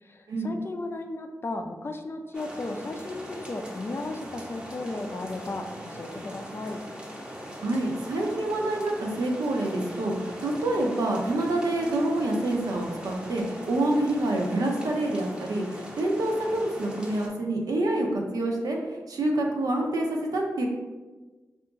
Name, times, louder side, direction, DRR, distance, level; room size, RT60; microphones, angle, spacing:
voice 1, 0.0-6.8, left 2 dB, 40° left, 5 dB, 0.3 m, -35 dB
sound 1, 2.3-17.3, equal, 15° right, 0.6 m, -41 dB
voice 2, 7.6-18.8 19.1-20.6, right 1 dB, 80° right, 0 dB, 0.6 m, -27 dB
2.9 x 2.4 x 3.5 m, 1.3 s
cardioid pair, 70°, 6 cm